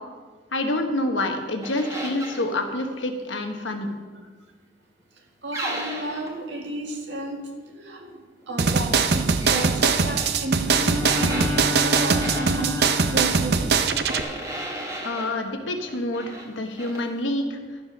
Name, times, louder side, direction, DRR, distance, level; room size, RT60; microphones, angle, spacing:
voice 1, 0.5-3.9 15.0-17.6, left 1 dB, 90° left, 4 dB, 1.3 m, -27 dB
sound 1, 1.6-2.5 5.5-6.3 9.4-10.3 11.0-13.0 14.0-15.4 15.9-16.5 16.8-17.1, right 1 dB, 15° right, 1.4 m, -34 dB
voice 2, 5.4-8.2 8.5-12.8 13.1-13.7, right 2 dB, 80° right, 1 dB, 1.9 m, -32 dB
sound 2, 8.6-14.2, right 5 dB, 60° right, 0.6 m, -22 dB
Bowed string instrument, 10.6-13.8, left 1 dB, 10° left, 0.4 m, -30 dB
12.5 x 6.9 x 5.4 m, 1.4 s
head